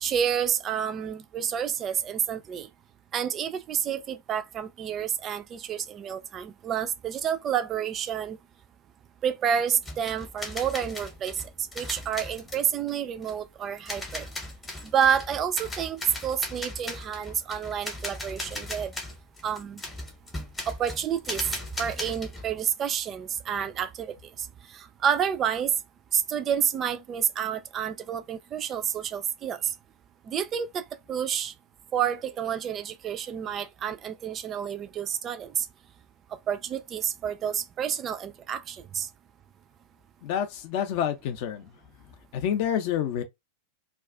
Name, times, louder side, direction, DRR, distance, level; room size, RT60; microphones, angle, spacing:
voice 1, 0.0-2.7 3.1-8.4 9.2-11.4 11.8-14.3 14.9-18.9 19.4-19.8 20.7-21.5 21.8-24.1 24.7-25.7 26.1-29.7 30.3-31.5 31.9-35.7 36.5-39.1, right 8 dB, 30° right, 0.3 m, -29 dB
sound 1, 9.8-22.6, left 2 dB, 15° left, 0.8 m, -38 dB
voice 2, 40.2-41.7 42.3-43.2, left 9 dB, 45° left, 0.5 m, -28 dB
2.3 x 2.3 x 2.4 m
figure-of-eight pair, 90°, 0 cm